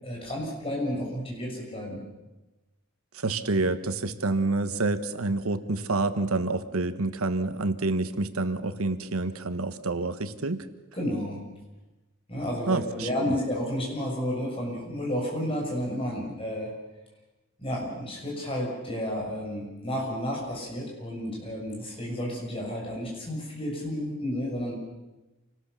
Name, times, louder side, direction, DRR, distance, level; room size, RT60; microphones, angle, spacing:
voice 1, 0.0-2.0 10.9-11.4 12.3-16.7 17.6-24.7, equal, 25° left, -1 dB, 7.2 m, -31 dB
voice 2, 3.1-10.6 12.7-13.3, right 3 dB, 85° right, 11 dB, 1.3 m, -28 dB
27.5 x 19.5 x 7.0 m, 1.1 s
head